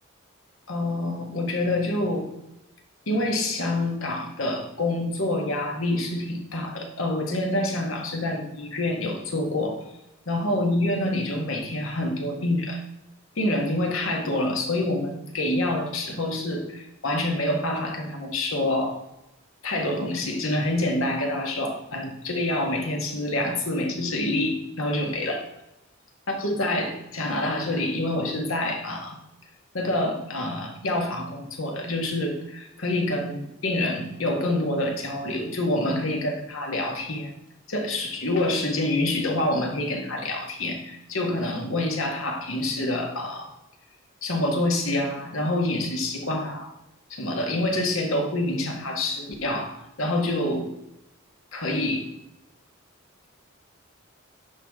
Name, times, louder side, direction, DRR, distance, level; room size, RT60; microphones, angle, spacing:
voice 1, 0.7-2.3 3.1-9.8 10.3-12.8 13.3-19.0 19.6-25.5 26.3-29.2 29.7-37.3 37.7-43.5 44.2-46.7 47.1-50.7 51.5-52.1, left 1 dB, 75° left, 2 dB, 1.7 m, -27 dB
9.7 x 5.8 x 3.7 m, 0.90 s
head